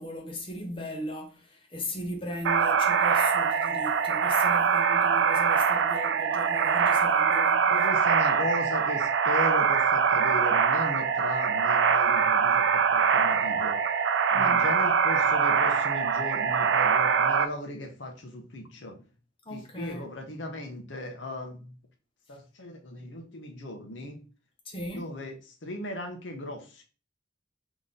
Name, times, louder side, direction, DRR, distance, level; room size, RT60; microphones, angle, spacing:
voice 1, 0.0-7.9 14.3-14.7 19.4-20.1 24.6-25.1, left 1 dB, 25° left, 1.0 m, -37 dB
sound 1, 2.4-17.5, right 6 dB, 80° right, 0.4 m, -23 dB
voice 2, 7.7-13.8 14.3-19.0 19.5-21.7 22.3-24.2 24.9-25.3 25.6-26.8, left 1 dB, 80° left, 1.0 m, -37 dB
3.9 x 3.1 x 3.7 m
head